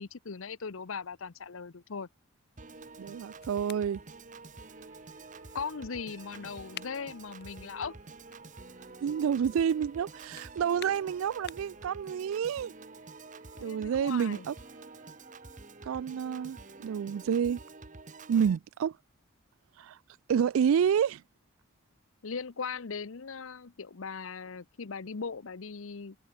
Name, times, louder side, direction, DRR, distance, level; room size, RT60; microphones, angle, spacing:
voice 1, 0.0-2.1 5.5-7.9 13.6-14.5 22.2-26.2, left 5 dB, 75° left, 0.8 m, -39 dB
sound 1, 2.6-11.9, left 9 dB, 50° left, 1.7 m, -53 dB
Piano / Organ, 2.6-18.6, right 3 dB, 35° right, 1.1 m, -49 dB
voice 2, 3.0-4.0 9.0-12.7 13.6-14.5 15.8-17.6 18.3-19.0 19.8-20.0 20.3-21.2, right 8 dB, 75° right, 0.3 m, -29 dB
sound 2, 4.6-17.3, right 1 dB, 15° right, 2.7 m, -63 dB
head